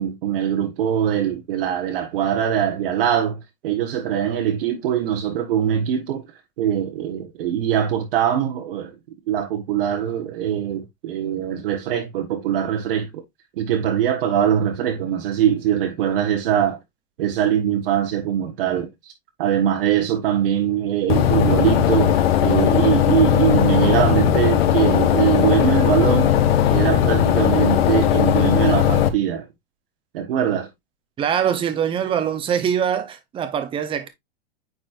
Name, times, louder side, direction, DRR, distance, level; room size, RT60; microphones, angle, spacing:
voice 1, 0.0-6.3 6.6-8.9 9.3-13.2 13.6-16.8 17.2-19.1 19.4-26.3 26.7-29.5 30.1-30.7, right 9 dB, 65° right, 1.3 m, -22 dB
sound 1, 21.1-29.1, left 10 dB, 80° left, 1.2 m, -18 dB
voice 2, 31.2-34.1, right 8 dB, 15° right, 0.9 m, -23 dB
9.1 x 4.2 x 2.5 m
supercardioid pair, 155°, 30 cm